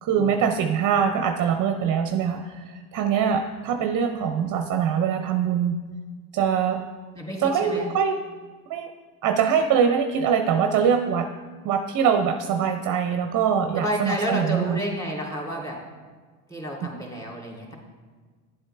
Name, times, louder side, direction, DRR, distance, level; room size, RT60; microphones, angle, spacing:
voice 1, 0.0-5.8 6.3-6.8 7.4-8.2 8.7-8.9 9.2-11.3 11.6-14.8, right 7 dB, 40° right, 6 dB, 0.6 m, -23 dB
voice 2, 7.1-7.9 13.8-15.8 16.5-17.7, equal, 5° left, -3 dB, 2.7 m, -30 dB
10.5 x 7.8 x 3.3 m, 1.5 s
supercardioid pair, 90°, 47 cm